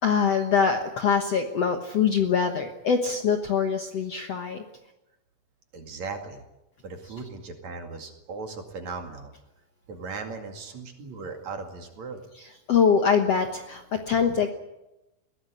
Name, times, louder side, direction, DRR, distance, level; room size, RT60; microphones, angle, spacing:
voice 1, 0.0-4.6 12.7-14.5, left 6 dB, 60° left, 5 dB, 1.8 m, -23 dB
voice 2, 5.7-6.4 6.8-9.3 9.9-12.2, right 4 dB, 50° right, 4 dB, 3.3 m, -37 dB
21.5 x 17.0 x 9.8 m, 0.96 s
omnidirectional pair, 4.4 m